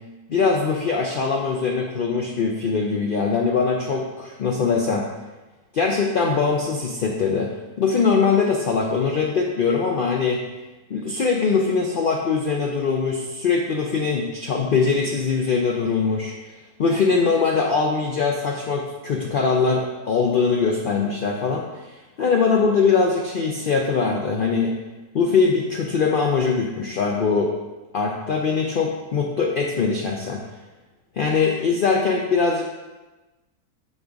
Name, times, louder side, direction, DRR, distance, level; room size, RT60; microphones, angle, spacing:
voice 1, 0.3-5.1 5.7-7.5 7.8-10.4 10.9-16.3 16.8-24.8 25.1-27.5 27.9-30.4 31.2-32.6, left 5 dB, 85° left, 1 dB, 0.4 m, -22 dB
6.3 x 3.5 x 5.0 m, 1.1 s
omnidirectional pair, 1.6 m